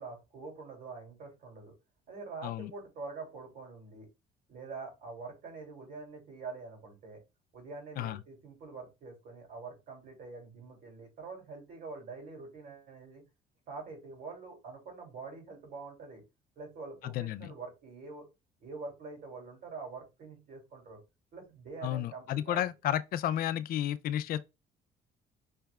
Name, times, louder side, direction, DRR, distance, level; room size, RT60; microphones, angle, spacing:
voice 1, 0.0-1.7 2.1-4.1 4.5-7.2 7.5-13.2 13.7-16.2 16.6-18.3 18.6-21.0 21.3-22.7, right 4 dB, 60° right, 2.7 m, -45 dB
voice 2, 17.0-17.5 21.8-24.4, left 11 dB, 60° left, 0.4 m, -32 dB
5.6 x 3.3 x 2.3 m
cardioid pair, 110°, 17 cm